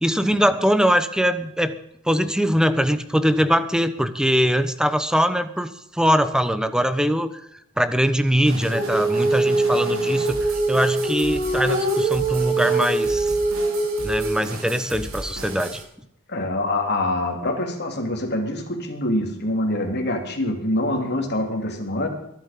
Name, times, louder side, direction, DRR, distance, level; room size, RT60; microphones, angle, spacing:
voice 1, 0.0-1.8 2.0-7.3 7.8-13.4 14.0-15.8, equal, 5° right, 11 dB, 1.0 m, -22 dB
sound 1, 8.4-15.8, right 2 dB, 65° right, 3.8 m, -36 dB
Female singing, 8.7-14.4, right 2 dB, 40° right, 4.7 m, -23 dB
voice 2, 16.3-22.1, left 1 dB, 50° left, 3 dB, 3.5 m, -25 dB
22.0 x 12.0 x 5.4 m, 0.77 s
head